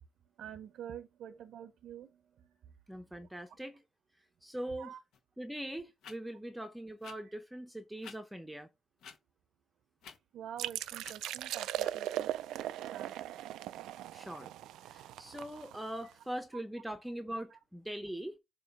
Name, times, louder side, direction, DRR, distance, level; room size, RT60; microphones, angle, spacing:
voice 1, 0.4-2.7 4.8-5.0 7.3-7.4 10.3-12.3 12.9-13.1 17.5-17.6, right 10 dB, 70° right, 0.7 m, -47 dB
voice 2, 2.9-3.8 4.4-4.9 5.4-8.7 14.1-14.5 14.8-18.4, right 1 dB, 5° right, 0.8 m, -42 dB
sound 1, 5.1-5.2 6.0-6.1 7.0-7.1 8.0-8.2 9.0-9.2 10.0-10.2 11.0-11.1, left 6 dB, 75° left, 1.3 m, -50 dB
sound 2, 10.6-16.1, right 12 dB, 90° right, 0.3 m, -39 dB
7.4 x 2.9 x 5.7 m
cardioid pair, 90°, 0 cm